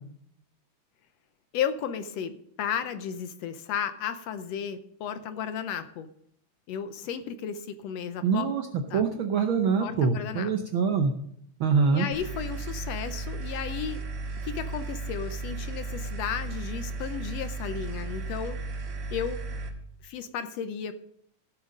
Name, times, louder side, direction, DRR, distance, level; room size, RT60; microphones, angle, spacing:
voice 1, 1.5-6.1 6.7-8.5 8.9-9.0 9.8-10.5 11.9-14.1 14.4-18.6 19.1-19.4 20.0-21.0, left 8 dB, 70° left, 10 dB, 1.8 m, -34 dB
voice 2, 8.2-8.7 8.9-11.1 11.6-12.1, right 5 dB, 75° right, 5 dB, 1.2 m, -24 dB
sound 1, 12.1-19.7, right 3 dB, 55° right, 2.7 m, -35 dB
16.0 x 7.5 x 5.3 m, 0.69 s
omnidirectional pair, 3.3 m